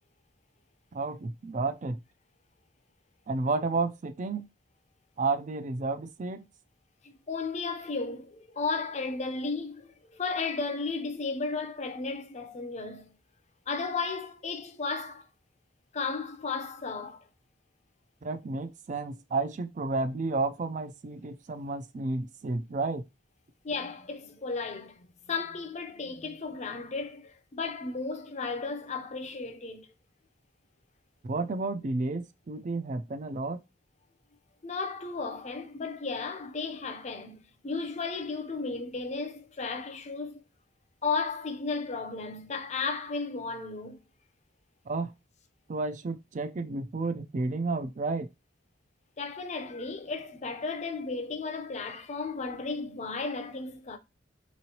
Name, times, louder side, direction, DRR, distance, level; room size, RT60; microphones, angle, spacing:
voice 1, 0.9-2.0 3.3-4.5 5.2-6.5 18.2-23.1 31.2-33.6 44.9-45.1 45.7-48.3, right 3 dB, 40° right, 0.4 m, -31 dB
voice 2, 7.0-13.1 13.7-15.3 15.9-17.2 23.6-29.9 34.6-40.4 41.0-44.0 49.2-54.0, left 4 dB, 40° left, 0.6 m, -34 dB
3.8 x 3.0 x 2.8 m
head